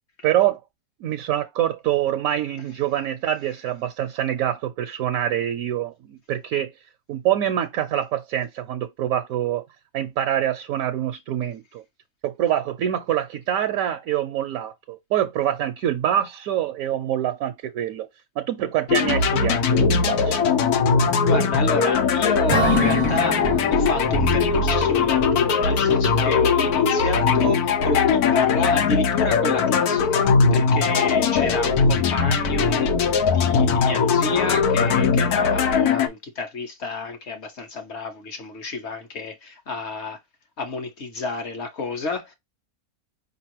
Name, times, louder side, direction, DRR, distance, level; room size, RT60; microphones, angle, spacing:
voice 1, 0.2-0.6 1.0-6.7 7.1-9.6 9.9-11.8 12.2-18.1 18.4-20.4, right 11 dB, 70° right, 0.9 m, -25 dB
sound 1, 18.9-36.1, left 5 dB, 90° left, 1.3 m, -20 dB
voice 2, 21.2-40.2 40.6-42.3, left 3 dB, 50° left, 1.2 m, -30 dB
Acoustic guitar / Strum, 22.5-26.1, right 4 dB, 45° right, 0.6 m, -29 dB
5.1 x 2.9 x 3.0 m
omnidirectional pair, 1.6 m